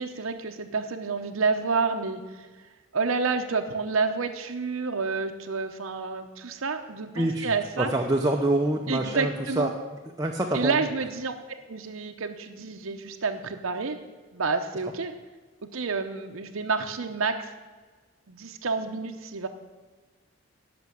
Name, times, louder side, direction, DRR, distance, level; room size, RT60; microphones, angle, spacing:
voice 1, 0.0-2.5 2.9-7.9 8.9-9.7 10.5-11.3 11.7-14.0 14.3-15.1 15.7-17.5 18.3-19.5, right 4 dB, 90° right, 5 dB, 0.8 m, -29 dB
voice 2, 7.1-7.5 7.8-9.7 10.2-10.8, right 1 dB, 15° right, 1 dB, 0.7 m, -26 dB
11.0 x 6.1 x 7.6 m, 1.4 s
head